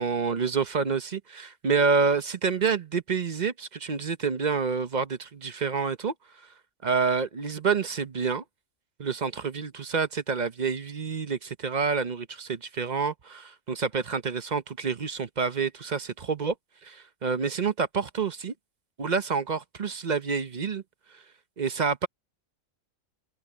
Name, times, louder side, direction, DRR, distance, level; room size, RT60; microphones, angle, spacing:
voice 1, 0.0-6.5 6.8-8.4 9.0-16.5 16.8-18.5 19.0-20.8 21.1-21.2 21.6-22.1, right 5 dB, 40° right, 0.8 m, -28 dB
open air
omnidirectional pair, 1.4 m